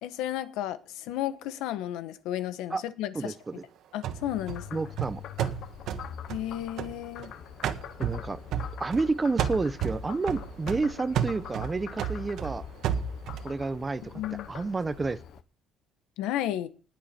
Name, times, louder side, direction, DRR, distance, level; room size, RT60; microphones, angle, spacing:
voice 1, 0.0-3.3 3.9-4.8 6.3-7.3 14.1-14.5 16.2-16.7, left 12 dB, 90° left, 1.2 m, -33 dB
voice 2, 3.1-3.5 4.7-5.2 8.0-8.4 8.8-12.7 13.4-14.1 14.5-15.2, right 3 dB, 20° right, 0.8 m, -30 dB
sound 1, 4.0-7.3 7.6-9.1 9.4-13.5, right 8 dB, 65° right, 1.4 m, -32 dB
Frog, 4.3-15.4, left 10 dB, 60° left, 0.9 m, -44 dB
19.5 x 7.4 x 4.4 m
cardioid pair, 125°, 0 cm